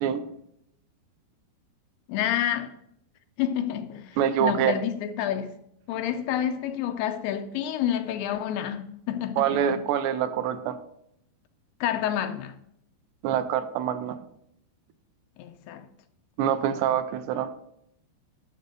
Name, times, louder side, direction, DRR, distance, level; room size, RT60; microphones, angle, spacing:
voice 1, 0.0-0.3 4.2-4.8 9.4-10.8 13.2-14.2 16.4-17.5, right 9 dB, 90° right, 2.9 m, -25 dB
voice 2, 2.1-2.8 3.4-5.6 5.9-9.8 11.8-12.5 15.4-15.9, left 10 dB, 80° left, 2.5 m, -29 dB
11.0 x 7.0 x 5.1 m
omnidirectional pair, 4.9 m